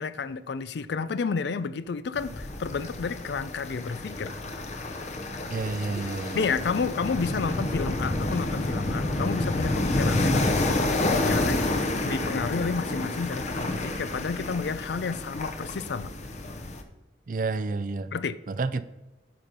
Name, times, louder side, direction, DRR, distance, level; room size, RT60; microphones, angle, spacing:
voice 1, 0.0-4.5 6.3-16.1 18.1-18.4, left 5 dB, 70° left, 0.4 m, -31 dB
sound 1, 2.1-16.8, left 2 dB, 40° left, 0.8 m, -29 dB
voice 2, 5.5-6.5 17.3-18.1 18.5-18.8, right 3 dB, 45° right, 0.4 m, -30 dB
9.5 x 5.7 x 5.2 m
head